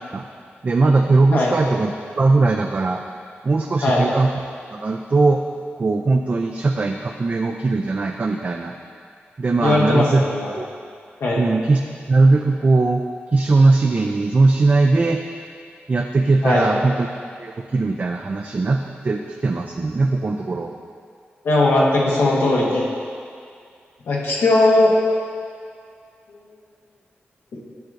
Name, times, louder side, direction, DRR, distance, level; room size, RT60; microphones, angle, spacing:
voice 1, 0.6-1.9 2.2-3.0 3.4-4.3 4.7-5.4 5.8-8.7 9.4-10.2 10.5-10.7 11.4-11.8 12.1-13.0 13.3-15.2 15.9-17.1 17.4-20.7, right 3 dB, 40° right, 3 dB, 0.3 m, -19 dB
voice 2, 9.6-10.5 11.2-11.4 16.4-16.7 21.4-22.9 24.0-24.9 26.3-26.4, left 2 dB, 90° left, -5 dB, 1.0 m, -18 dB
9.2 x 5.9 x 2.5 m, 2.2 s
cardioid pair, 75°, 4 cm